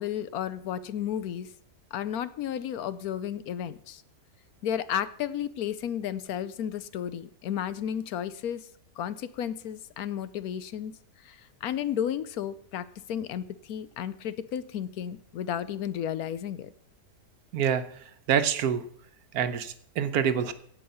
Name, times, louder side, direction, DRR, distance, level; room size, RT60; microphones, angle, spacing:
voice 1, 0.0-1.5 1.9-4.0 4.6-8.7 9.0-10.9 11.3-16.7, left 9 dB, 75° left, 15 dB, 1.1 m, -33 dB
voice 2, 17.5-17.8 18.3-18.8 19.3-20.5, right 8 dB, 75° right, 11 dB, 1.3 m, -26 dB
16.5 x 5.7 x 5.5 m, 0.64 s
omnidirectional pair, 1.6 m